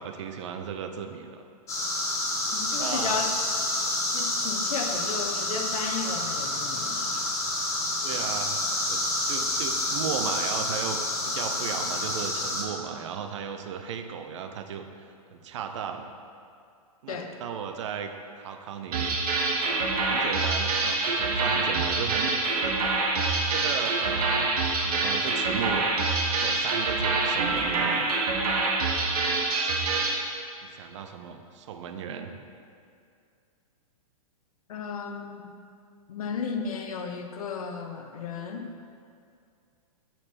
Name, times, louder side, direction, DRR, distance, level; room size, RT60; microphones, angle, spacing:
voice 1, 0.0-1.4 2.7-3.2 8.0-8.6 8.9-14.9 15.3-16.1 17.0-18.1 18.4-19.2 19.6-22.8 23.5-24.4 24.8-25.8 26.4-28.0 30.6-32.3, right 7 dB, 50° right, 6 dB, 0.6 m, -35 dB
sound 1, 1.7-12.6, left 1 dB, 15° left, 0.9 m, -29 dB
voice 2, 2.5-3.3 4.1-7.3 17.1-17.3 34.7-35.5 36.1-38.7, left 5 dB, 70° left, 5 dB, 0.8 m, -34 dB
sound 2, 18.9-30.2, right 3 dB, 80° right, 1.2 m, -26 dB
6.8 x 4.4 x 5.7 m, 2.4 s
hypercardioid pair, 160°, 19 cm